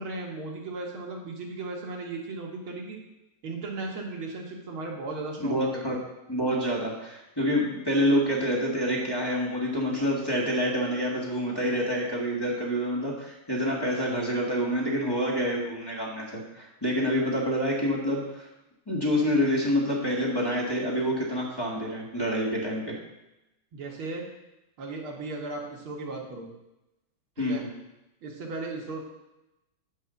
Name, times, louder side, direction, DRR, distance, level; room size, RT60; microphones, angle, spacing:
voice 1, 0.0-3.0 3.4-6.0 23.7-24.3 24.8-26.5 27.4-27.6 28.2-29.0, right 3 dB, 75° right, 0 dB, 2.4 m, -36 dB
voice 2, 5.4-6.0 6.3-18.5 18.9-23.0 27.4-27.7, equal, 10° left, -3 dB, 1.7 m, -27 dB
9.2 x 5.0 x 6.9 m, 0.94 s
omnidirectional pair, 2.4 m